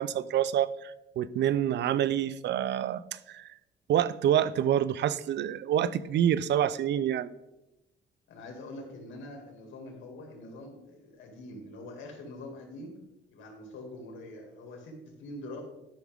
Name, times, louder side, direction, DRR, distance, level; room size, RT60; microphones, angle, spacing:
voice 1, 0.0-3.5 3.9-7.3, right 10 dB, 65° right, 18 dB, 0.5 m, -27 dB
voice 2, 8.3-13.0 13.3-15.6, left 1 dB, 80° left, 2 dB, 2.3 m, -44 dB
11.5 x 6.0 x 3.6 m, 0.95 s
cardioid pair, 90°, 20 cm